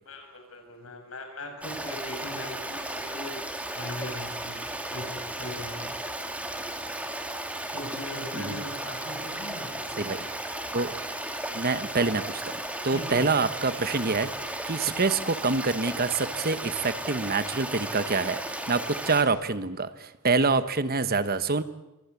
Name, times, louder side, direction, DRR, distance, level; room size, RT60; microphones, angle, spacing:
voice 1, 0.0-6.0 7.7-10.1 12.9-13.3 20.4-20.5, left 1 dB, 70° left, 4 dB, 7.5 m, -40 dB
Stream, 1.6-19.2, right 1 dB, 5° right, 2.6 m, -35 dB
voice 2, 8.3-8.7 10.0-10.2 10.7-10.9 11.5-12.4 12.8-14.3 14.7-21.6, right 4 dB, 45° right, 13 dB, 1.2 m, -26 dB
28.0 x 24.0 x 8.5 m, 0.96 s
head